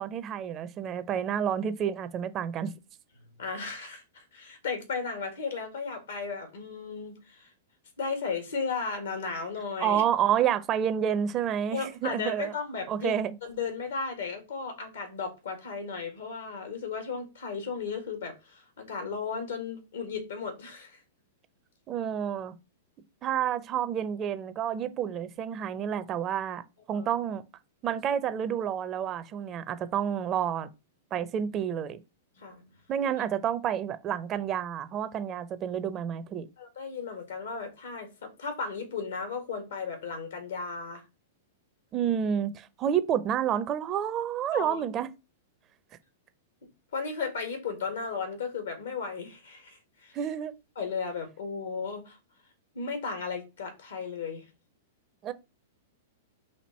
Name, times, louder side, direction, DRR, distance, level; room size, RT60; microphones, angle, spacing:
voice 1, 0.0-2.7 9.8-12.5 12.9-13.3 21.9-22.5 23.2-26.6 26.9-27.4 27.8-30.7 31.1-32.0 32.9-36.5 41.9-45.1 50.1-50.5 55.2-55.3, right 9 dB, 35° right, 0.6 m, -29 dB
voice 2, 3.4-7.5 8.0-10.0 11.7-13.1 13.4-21.0 26.9-27.1 32.4-32.8 36.6-41.0 44.5-44.8 46.9-50.1 50.7-52.2 52.7-54.4, left 5 dB, 80° left, 1.7 m, -35 dB
4.3 x 2.8 x 4.3 m
hypercardioid pair, 110°, 0 cm